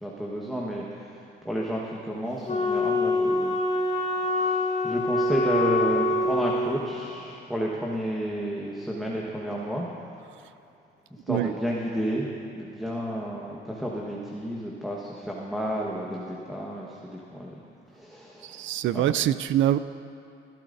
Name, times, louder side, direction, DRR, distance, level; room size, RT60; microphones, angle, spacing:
voice 1, 0.0-9.9 11.3-12.3 12.5-17.6 17.9-19.0, equal, ahead, -4 dB, 1.3 m, -32 dB
Wind instrument woodwind instrument, 2.5-6.8, left 2 dB, 35° left, 1.4 m, -25 dB
voice 2, 18.5-19.8, right 12 dB, 75° right, 13 dB, 0.4 m, -24 dB
21.5 x 12.0 x 2.7 m, 2.6 s
cardioid pair, 90°, 20 cm